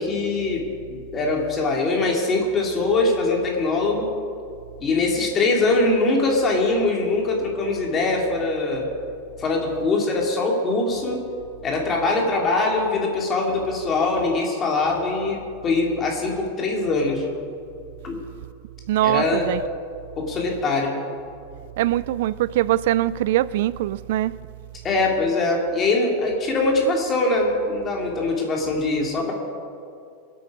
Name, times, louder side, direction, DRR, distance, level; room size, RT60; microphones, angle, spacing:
voice 1, 0.0-4.1 4.8-8.9 9.4-11.3 11.6-17.2 18.0-18.2 19.0-19.5 20.2-21.0 24.8-29.3, left 3 dB, 25° left, 2.6 m, -22 dB
voice 2, 18.9-19.6 21.8-24.4, right 14 dB, 65° right, 0.3 m, -22 dB
23.5 x 8.4 x 5.3 m
supercardioid pair, 155°, 0 cm